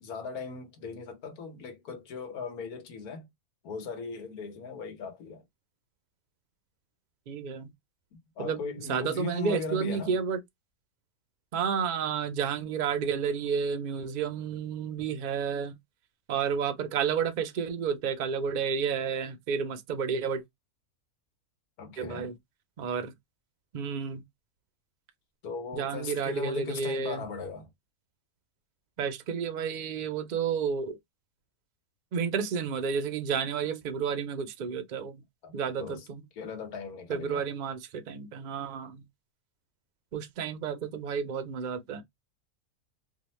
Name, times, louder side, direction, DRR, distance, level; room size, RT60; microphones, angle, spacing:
voice 1, 0.0-3.3 3.6-5.4 8.1-10.2 21.8-22.3 25.4-27.7 35.4-36.1 36.4-37.4, left 4 dB, 85° left, 1.4 m, -38 dB
voice 2, 7.3-7.7 8.4-10.4 11.5-15.7 16.3-20.4 22.0-22.4 22.8-23.1 23.7-24.2 25.7-27.2 29.0-31.0 32.1-35.2 35.5-36.2 37.1-39.0 40.1-42.0, right 6 dB, 65° right, 0.4 m, -31 dB
2.9 x 2.1 x 3.0 m
omnidirectional pair, 1.5 m